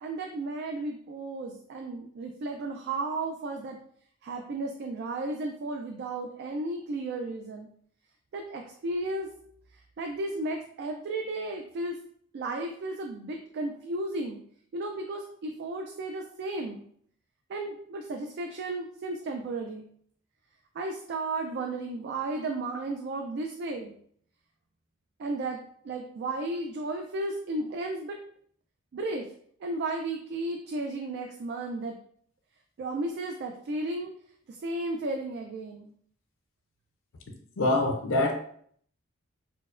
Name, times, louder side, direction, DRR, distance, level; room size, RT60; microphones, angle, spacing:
voice 1, 0.0-3.8 4.2-7.7 8.3-9.3 10.0-12.0 12.3-14.4 14.7-16.8 17.5-19.9 20.8-23.9 25.2-25.6 25.8-28.2 28.9-29.3 29.6-32.0 32.8-34.1 34.5-35.9, right 2 dB, 55° right, 3 dB, 0.3 m, -34 dB
voice 2, 37.6-38.3, left 2 dB, 65° left, 3 dB, 0.5 m, -24 dB
4.2 x 2.1 x 2.4 m, 0.62 s
head